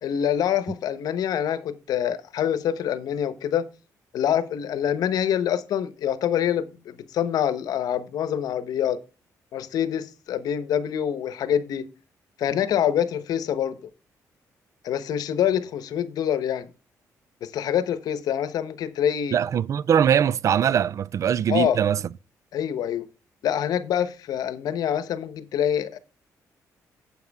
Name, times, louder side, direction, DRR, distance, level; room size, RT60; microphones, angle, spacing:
voice 1, 0.0-3.7 4.1-9.0 9.5-11.9 12.4-13.8 14.8-16.7 17.4-19.4 21.5-21.8 22.5-23.0 23.4-26.0, left 9 dB, 75° left, 1.0 m, -25 dB
voice 2, 19.3-22.0, right 8 dB, 50° right, 0.4 m, -21 dB
9.3 x 7.9 x 3.5 m
cardioid pair, 105°, 7 cm